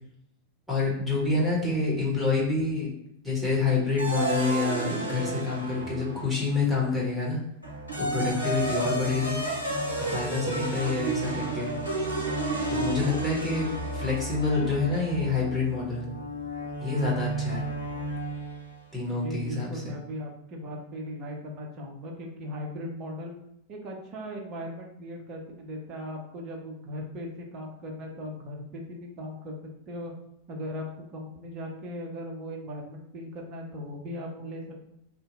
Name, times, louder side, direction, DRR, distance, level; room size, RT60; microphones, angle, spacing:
voice 1, 0.7-2.9 3.2-7.4 8.0-9.4 10.0-11.7 12.7-16.0 16.8-17.6 18.9-19.9, left 4 dB, 5° right, -5 dB, 1.2 m, -27 dB
sound 1, 4.0-6.6 7.6-18.7, right 2 dB, 85° right, 0.7 m, -32 dB
voice 2, 19.1-23.4 23.7-30.1 30.5-34.8, left 1 dB, 35° right, 0 dB, 0.7 m, -38 dB
2.7 x 2.1 x 4.0 m, 0.78 s
figure-of-eight pair, 90°, 0 cm